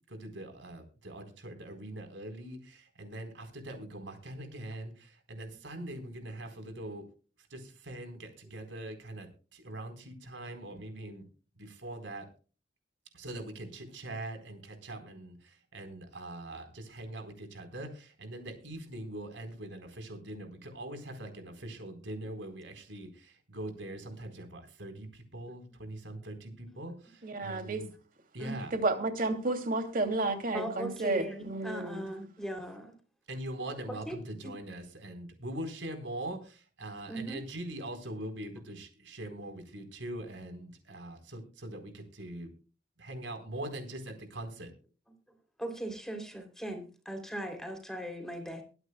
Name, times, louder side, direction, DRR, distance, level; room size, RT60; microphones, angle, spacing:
voice 1, 0.1-7.0 7.5-11.2 11.6-12.3 13.1-27.9 28.3-28.7 33.3-42.5 43.0-44.7, right 1 dB, 90° right, 6 dB, 4.2 m, -42 dB
voice 2, 27.2-27.8 28.7-32.1, right 2 dB, 50° right, 6 dB, 2.7 m, -31 dB
voice 3, 30.5-32.9 33.9-34.2 34.4-34.6 37.1-37.4 45.6-48.6, right 1 dB, 5° left, 5 dB, 3.1 m, -39 dB
23.0 x 9.7 x 2.3 m, 0.35 s
head